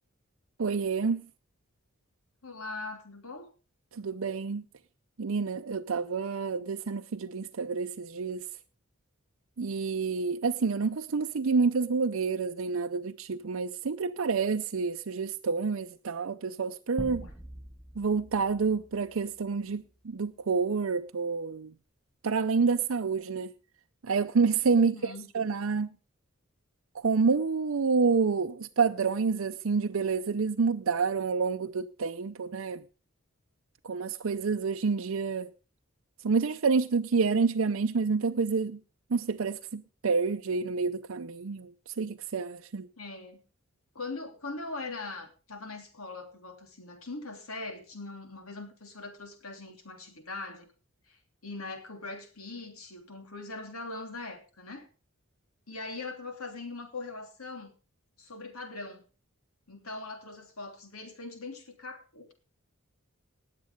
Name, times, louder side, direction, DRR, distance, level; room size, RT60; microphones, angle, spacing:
voice 1, 0.6-1.2 3.9-4.6 5.2-8.5 9.6-17.3 18.0-21.7 22.2-23.5 24.0-25.9 26.9-32.8 33.8-35.5 36.2-38.8 39.1-42.9, right 5 dB, 75° right, 0.6 m, -28 dB
voice 2, 2.4-3.5 17.2-17.3 24.8-25.3 43.0-43.4 43.9-50.7 51.1-54.9 55.7-57.7 58.2-59.0 59.7-62.3, left 3 dB, 85° left, 3.1 m, -41 dB
sound 1, 17.0-19.8, equal, ahead, 1.1 m, -44 dB
19.0 x 7.6 x 5.1 m
head